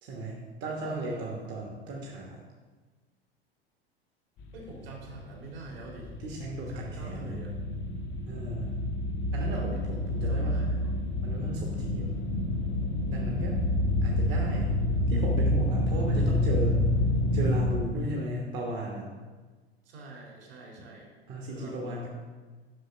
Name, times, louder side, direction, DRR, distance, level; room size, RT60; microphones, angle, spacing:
voice 1, 0.0-2.4 6.2-7.4 8.3-8.8 9.3-10.6 11.2-12.2 13.1-13.6 14.0-14.8 15.1-16.8 17.3-19.1 21.3-22.1, right 1 dB, 35° right, -2 dB, 1.4 m, -35 dB
voice 2, 0.6-1.3 4.5-6.1 6.7-7.5 9.5-10.9 19.9-21.1 21.4-22.0, right 3 dB, 60° right, -1 dB, 2.7 m, -46 dB
sound 1, 4.4-17.8, left 1 dB, 35° left, 0.8 m, -28 dB
6.7 x 5.8 x 6.2 m, 1.4 s
figure-of-eight pair, 80°, 32 cm